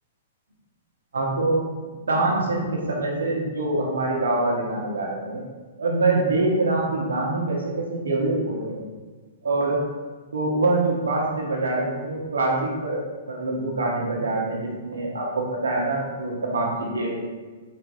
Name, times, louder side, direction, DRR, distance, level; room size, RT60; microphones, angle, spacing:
voice 1, 1.1-1.6 2.1-5.4 5.8-8.8 9.4-9.8 10.3-17.3, right 2 dB, 85° right, -2 dB, 1.2 m, -25 dB
4.5 x 4.3 x 2.7 m, 1.3 s
hypercardioid pair, 125°, 0 cm